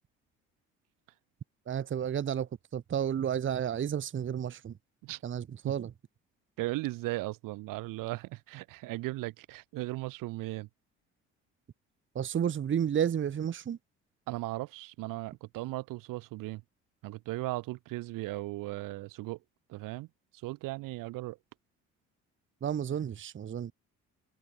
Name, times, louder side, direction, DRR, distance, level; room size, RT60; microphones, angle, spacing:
voice 1, 1.7-4.8 5.2-5.9 12.1-13.8 22.6-23.7, right 9 dB, 35° right, 0.8 m, -31 dB
voice 2, 6.6-10.7 14.3-16.6 17.0-19.4 19.7-20.1 20.4-21.4, right 20 dB, 70° right, 0.9 m, -37 dB
hypercardioid pair, 60°, 34 cm